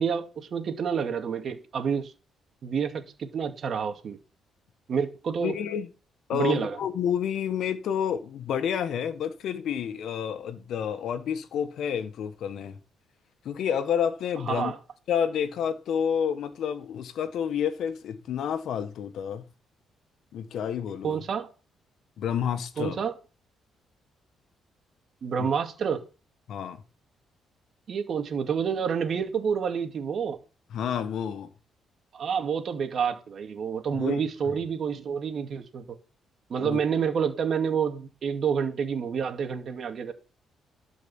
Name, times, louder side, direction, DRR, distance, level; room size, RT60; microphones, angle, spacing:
voice 1, 0.0-2.1 2.6-4.2 4.9-5.5 6.3-6.8 14.5-14.8 21.0-21.5 22.8-23.1 25.2-26.0 27.9-30.4 32.1-36.0 36.5-40.1, right 6 dB, 55° right, 2.3 m, -28 dB
voice 2, 5.4-5.9 6.3-12.8 13.4-14.7 15.1-19.4 20.3-21.2 22.2-23.0 25.4-25.5 26.5-26.8 30.7-31.5 33.9-34.2 36.6-36.8, left 8 dB, 70° left, 1.6 m, -29 dB
12.0 x 5.4 x 7.3 m
cardioid pair, 90°, 0 cm